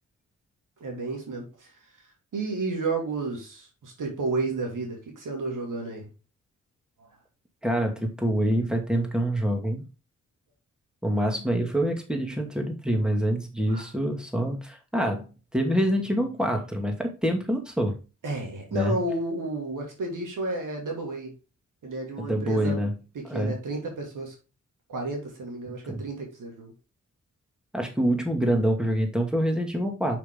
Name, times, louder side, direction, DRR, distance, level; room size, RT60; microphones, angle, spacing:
voice 1, 0.8-1.7 2.3-6.1 13.7-13.9 18.2-21.3 21.8-22.8 23.3-24.3 24.9-26.7, right 2 dB, 75° right, 1 dB, 2.7 m, -32 dB
voice 2, 7.6-9.8 11.0-15.2 15.5-18.0 18.7-19.0 22.2-23.0 23.3-23.6 25.7-26.0 27.7-30.2, equal, ahead, 3 dB, 2.5 m, -26 dB
6.3 x 5.9 x 3.8 m, 0.32 s
supercardioid pair, 40°, 32 cm